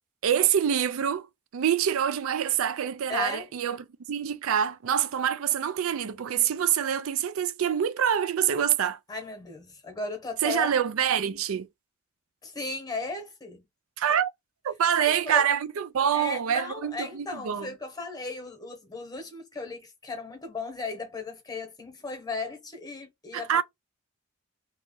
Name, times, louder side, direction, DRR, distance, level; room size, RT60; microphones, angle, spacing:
voice 1, 0.2-1.3 1.5-3.8 4.1-9.0 10.4-11.7 14.0-14.3 14.6-17.7 23.3-23.6, right 9 dB, 70° right, 0.4 m, -26 dB
voice 2, 3.1-3.5 9.1-10.8 12.4-13.6 15.0-15.4 16.1-23.6, left 3 dB, 20° left, 1.0 m, -36 dB
2.8 x 2.4 x 3.7 m
head